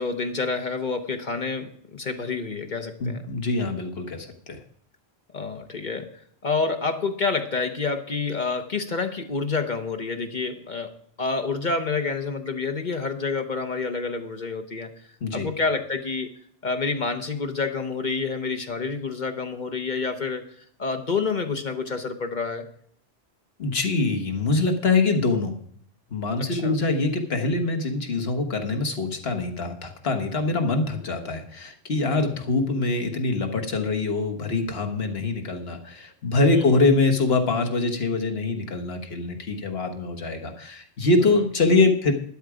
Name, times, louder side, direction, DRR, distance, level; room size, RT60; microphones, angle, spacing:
voice 1, 0.0-3.2 5.3-14.9 15.3-16.3 16.6-20.4 20.8-22.7 26.4-26.8 32.1-32.2 36.5-36.8 41.2-41.4, left 4 dB, 45° left, 6 dB, 1.0 m, -28 dB
voice 2, 3.0-4.6 15.2-15.5 23.6-25.5 26.1-42.1, left 3 dB, 60° left, 4 dB, 1.7 m, -24 dB
12.0 x 11.5 x 5.0 m, 0.63 s
omnidirectional pair, 1.2 m